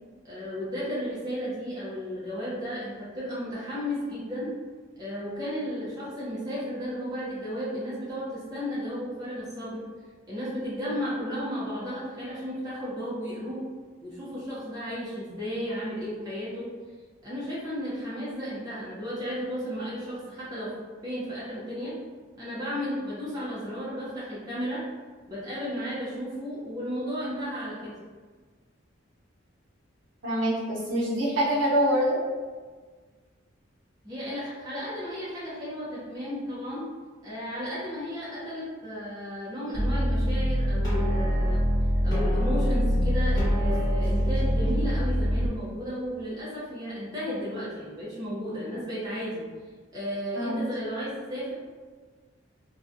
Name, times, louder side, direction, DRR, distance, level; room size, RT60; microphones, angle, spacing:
voice 1, 0.2-4.5 5.0-9.8 10.3-13.6 14.0-16.7 17.2-20.7 21.0-21.9 22.4-24.8 25.3-27.9 34.0-36.9 37.2-41.6 42.0-49.4 49.9-51.5, equal, 20° right, -9 dB, 0.6 m, -34 dB
voice 2, 30.2-32.2 50.3-50.6, equal, 70° right, -7 dB, 0.8 m, -25 dB
sound 1, 39.7-45.5, equal, 20° left, 1.0 m, -24 dB
2.4 x 2.2 x 2.5 m, 1.5 s
head